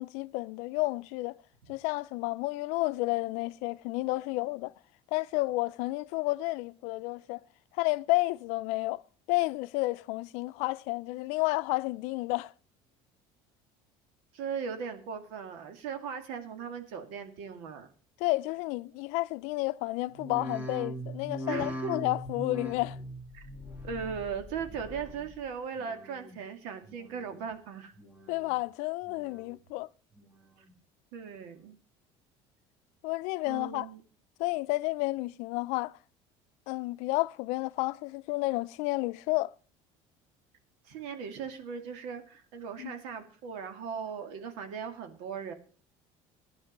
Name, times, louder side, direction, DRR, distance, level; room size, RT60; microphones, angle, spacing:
voice 1, 0.0-1.4 1.7-4.7 5.1-7.4 7.8-9.0 9.3-12.5 18.2-23.0 28.3-29.9 33.0-33.9 34.4-36.0 36.7-39.5 42.8-42.9, left 21 dB, 75° left, 0.5 m, -31 dB
voice 2, 14.3-17.9 21.5-22.0 23.3-23.5 23.8-27.9 31.1-31.8 33.4-34.0 40.8-45.5, right 6 dB, 80° right, 2.2 m, -38 dB
sound 1, 20.1-25.4 25.8-26.4 26.8-27.5 27.9-28.6 29.0-29.7 30.2-30.7 31.3-31.4, equal, 15° right, 2.0 m, -41 dB
15.0 x 10.5 x 5.3 m
cardioid pair, 125°, 12 cm